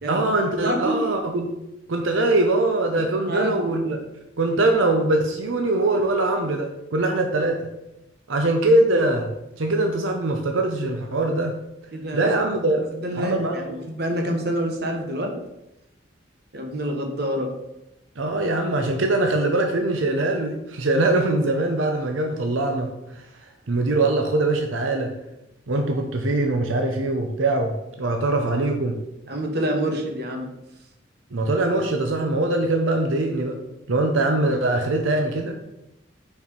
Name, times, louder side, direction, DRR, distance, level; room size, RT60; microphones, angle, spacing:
voice 1, 0.1-1.5 1.9-4.0 4.4-7.6 8.3-9.3 9.6-11.5 12.1-12.8 13.2-13.8 18.2-22.9 23.7-25.1 25.7-29.0 31.3-33.6 33.9-35.5, right 2 dB, 90° right, 3 dB, 0.8 m, -22 dB
voice 2, 0.6-1.0 3.2-3.7 11.9-12.4 12.7-15.4 16.5-17.6 29.3-30.6, equal, 55° right, 3 dB, 1.2 m, -27 dB
5.5 x 4.6 x 5.2 m, 0.88 s
head